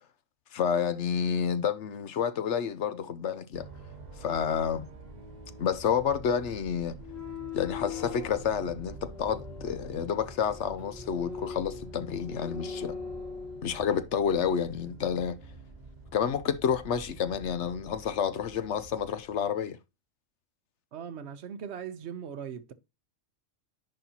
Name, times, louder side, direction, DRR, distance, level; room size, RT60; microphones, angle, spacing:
voice 1, 0.5-3.7 4.2-4.8 5.6-6.9 7.5-12.9 13.6-15.4 16.1-19.8, left 7 dB, 65° left, 0.9 m, -29 dB
sound 1, 3.5-19.5, right 2 dB, 35° right, 1.1 m, -47 dB
sound 2, 7.0-14.0, left 6 dB, 85° left, 3.1 m, -41 dB
voice 2, 20.9-22.7, right 8 dB, 60° right, 1.0 m, -39 dB
10.5 x 4.1 x 2.8 m
omnidirectional pair, 1.4 m